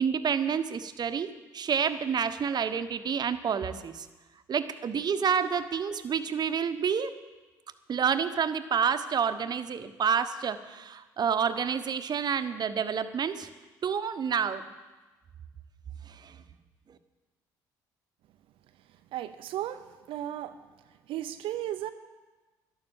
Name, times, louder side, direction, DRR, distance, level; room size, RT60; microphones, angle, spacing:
voice 1, 0.0-4.1 4.5-7.1 7.9-13.5 13.8-14.6 16.1-16.4 16.9-17.0, right 7 dB, 45° right, 11 dB, 1.0 m, -29 dB
voice 2, 18.7-20.6 20.9-21.9, right 12 dB, 65° right, 9 dB, 0.7 m, -36 dB
12.0 x 11.5 x 7.2 m, 1.2 s
hypercardioid pair, 55°, 10 cm